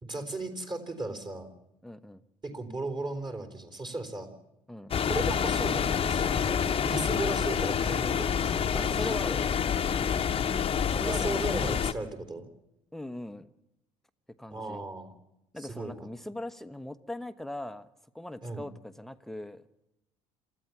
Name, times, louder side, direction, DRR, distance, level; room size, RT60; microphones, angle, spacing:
voice 1, 0.0-1.5 2.4-4.3 5.1-9.1 11.0-12.5 14.5-15.1 15.6-16.1 18.4-18.6, right 2 dB, 25° right, 7 dB, 4.1 m, -36 dB
voice 2, 1.8-2.2 4.7-4.9 8.7-9.4 10.9-11.4 12.9-13.5 14.4-14.8 15.5-17.9 18.1-19.6, left 1 dB, ahead, 12 dB, 1.1 m, -39 dB
sound 1, 4.9-11.9, left 7 dB, 35° left, 1.1 m, -27 dB
27.5 x 14.5 x 7.3 m, 0.90 s
figure-of-eight pair, 55°, 17 cm